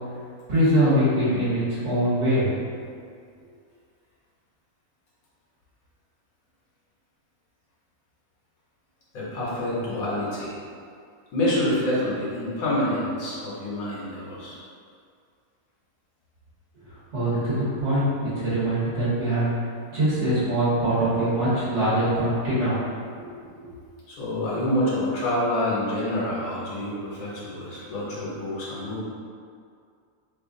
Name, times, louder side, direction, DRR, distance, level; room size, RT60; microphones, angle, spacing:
voice 1, 0.5-2.5 17.1-19.5 19.9-22.8, right 1 dB, 50° right, -12 dB, 1.5 m, -23 dB
voice 2, 9.1-10.5 11.3-14.6 24.1-29.0, left 1 dB, 70° left, -7 dB, 1.3 m, -27 dB
3.2 x 2.3 x 3.7 m, 2.3 s
omnidirectional pair, 1.6 m